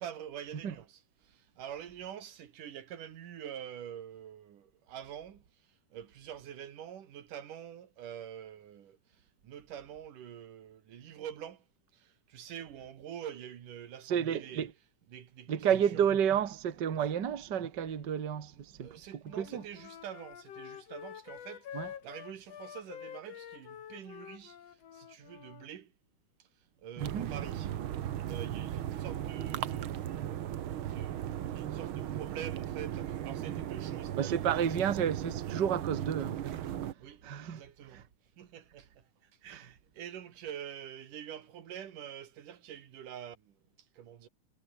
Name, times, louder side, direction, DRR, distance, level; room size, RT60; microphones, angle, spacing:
voice 1, 0.0-5.4 5.9-9.0 9.4-11.6 11.9-14.7 15.1-15.7 15.9-16.0 16.9-17.1 18.5-24.6 24.9-25.9 26.8-27.7 28.3-30.5 30.9-34.6 37.0-38.1 38.4-43.6 44.0-44.3, right 9 dB, 85° right, 3.6 m, -46 dB
voice 2, 14.1-14.7 15.5-18.9 19.4-19.6 21.7-21.9 27.0-27.3 34.2-36.6 37.2-37.6 37.9-38.0 39.5-39.6, right 8 dB, 40° right, 2.0 m, -31 dB
Wind instrument woodwind instrument, 19.3-25.7, left 9 dB, 55° left, 2.6 m, -47 dB
sound 1, 27.0-36.9, right 11 dB, 60° right, 1.4 m, -37 dB
omnidirectional pair, 3.6 m